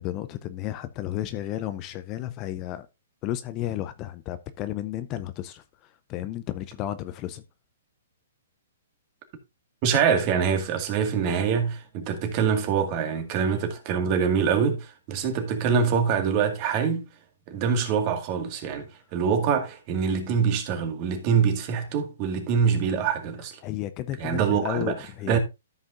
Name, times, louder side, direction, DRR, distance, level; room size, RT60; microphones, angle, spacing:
voice 1, 0.0-2.9 3.2-7.4 23.6-25.4, left 13 dB, 30° left, 0.6 m, -33 dB
voice 2, 9.8-17.0 17.5-18.9 19.1-23.6 24.2-25.0 25.3-25.4, right 6 dB, 35° right, 2.0 m, -24 dB
13.5 x 5.6 x 2.6 m
hypercardioid pair, 145°, 0 cm